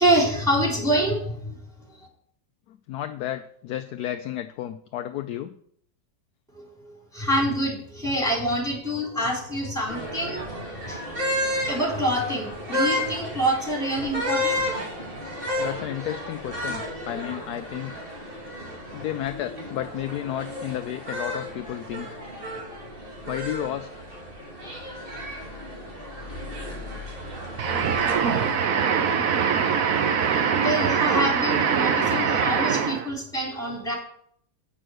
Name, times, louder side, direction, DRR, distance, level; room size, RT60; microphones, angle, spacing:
voice 1, 0.0-1.6 2.0-2.1 6.8-10.5 10.8-11.0 11.4-14.7 28.4-28.6 29.0-29.1 30.2-33.9, right 1 dB, ahead, -2 dB, 3.3 m, -26 dB
voice 2, 2.7-5.5 15.6-18.0 18.9-22.2 23.3-24.0, left 12 dB, 70° left, 9 dB, 1.0 m, -32 dB
sound 1, 9.9-28.5, left 1 dB, 30° right, 2.4 m, -32 dB
sound 2, 27.6-33.1, right 6 dB, 55° right, 1.2 m, -23 dB
8.8 x 6.3 x 6.3 m, 0.66 s
omnidirectional pair, 1.9 m